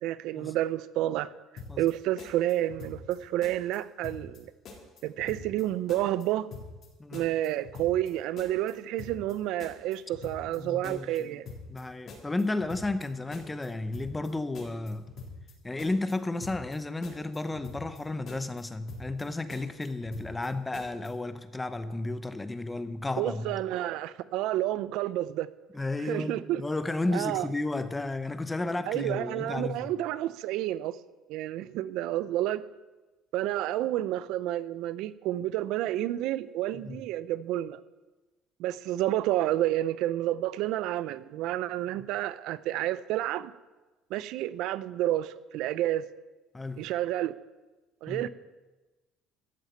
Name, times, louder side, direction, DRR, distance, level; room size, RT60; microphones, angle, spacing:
voice 1, 0.0-1.3 1.8-4.5 5.0-6.5 7.1-11.5 23.2-25.5 26.0-26.6 27.1-27.5 28.9-31.0 31.3-32.6 33.3-37.8 38.6-43.5 44.1-46.1 46.8-47.3 48.0-48.3, right 14 dB, 70° right, 0.5 m, -30 dB
sound 1, 1.6-1.9 2.2-3.2 3.4-3.8 4.0-4.4 4.7-5.6 5.9-6.2 6.5-6.9 7.1-8.1 8.4-8.7 9.0-9.3 9.6-10.6 10.8-11.2 11.5-11.8 12.1-13.1 13.3-13.7 13.9-14.3 14.5-15.5 15.8-16.1 16.4-16.8 17.0-18.0 18.3-18.6 18.9-19.2 19.5-20.5 20.7-21.1, left 4 dB, 45° left, 3.8 m, -44 dB
voice 2, 10.6-11.4 11.7-15.1 15.6-23.6 25.7-29.9 36.8-37.0 46.5-46.8 48.1-48.3, left 2 dB, 10° left, 0.8 m, -33 dB
14.0 x 7.3 x 9.1 m
cardioid pair, 140°, 0 cm